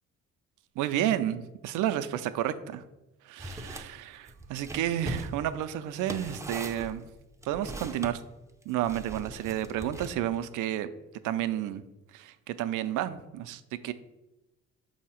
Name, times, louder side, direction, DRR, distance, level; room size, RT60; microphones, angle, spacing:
voice 1, 0.8-2.8 3.3-7.1 7.5-8.2 8.7-10.9 11.2-11.8 12.1-13.9, right 12 dB, 90° right, 12 dB, 0.5 m, -31 dB
sound 1, 3.4-3.9 4.3-8.1 8.8-10.4, right 1 dB, 10° right, 0.5 m, -40 dB
6.6 x 2.8 x 5.6 m, 1.0 s
cardioid pair, 90°, 30 cm